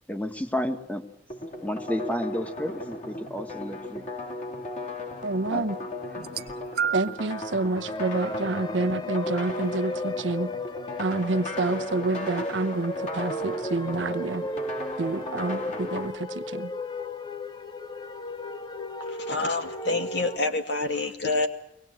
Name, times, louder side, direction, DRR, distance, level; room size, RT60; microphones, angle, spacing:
voice 1, 0.1-1.0 1.6-4.0 5.5-5.7, left 1 dB, 10° left, 7 dB, 1.4 m, -31 dB
sound 1, 1.3-16.1, left 1 dB, 40° left, 3.0 m, -36 dB
voice 2, 5.2-5.8 6.9-10.5 11.0-14.4 15.0-16.7, right 2 dB, 85° right, 10 dB, 0.9 m, -28 dB
sound 2, 6.1-7.3 8.2-8.4 9.4-9.5, right 8 dB, 60° right, 0.9 m, -31 dB
sound 3, 7.8-20.4, left 1 dB, 25° left, 0.8 m, -35 dB
voice 3, 19.1-21.5, left 3 dB, 65° left, 5 dB, 2.5 m, -27 dB
23.5 x 19.0 x 7.9 m, 0.84 s
head